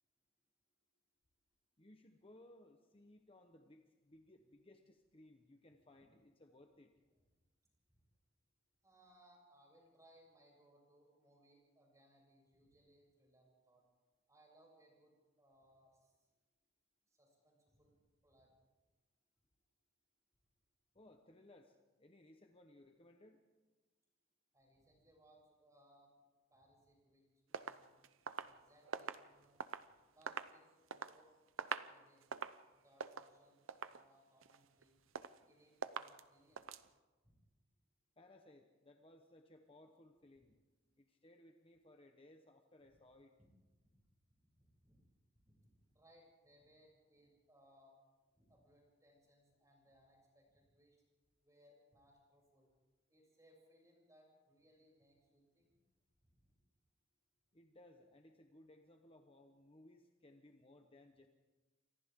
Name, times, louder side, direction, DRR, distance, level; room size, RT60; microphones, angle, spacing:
voice 1, 1.8-6.9 20.9-23.4 38.2-40.6 41.0-43.3 57.5-61.3, left 1 dB, 30° left, 4 dB, 1.2 m, -63 dB
voice 2, 8.8-13.9 14.3-16.3 17.1-18.0 18.2-18.5 24.5-26.1 26.5-27.9 28.4-29.6 30.1-32.3 32.7-35.0 35.4-36.7 37.2-37.4 43.8-44.1 44.6-45.0 45.4-48.0 48.3-51.0 51.4-52.7 53.1-55.8 56.2-56.5, equal, 15° right, -2 dB, 7.6 m, -69 dB
sound 1, 27.5-29.9 30.2-31.2 31.5-32.0 32.2-32.6 33.0-33.3 33.7-34.1 34.4-34.8 35.2-35.5 35.8-36.2 36.6-36.9, right 6 dB, 85° right, 0.7 m, -45 dB
29.0 x 25.5 x 3.8 m, 1.2 s
head